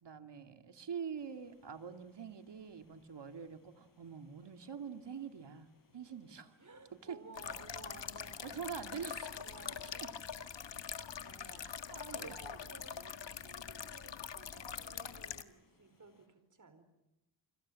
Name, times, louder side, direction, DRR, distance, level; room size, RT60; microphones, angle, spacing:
voice 1, 0.0-5.7 5.9-6.5 7.0-7.2 8.4-9.5 9.8-10.1 11.5-12.3, right 7 dB, 60° right, 7 dB, 2.5 m, -45 dB
Water, 1.2-16.3, left 3 dB, 45° left, 6.5 m, -71 dB
voice 2, 6.6-8.8 9.3-9.9 11.2-16.8, right 4 dB, 40° right, 11 dB, 4.7 m, -57 dB
sound 1, 7.3-15.4, left 7 dB, 65° left, 1.6 m, -44 dB
28.5 x 26.0 x 7.6 m, 0.91 s
cardioid pair, 75°, 47 cm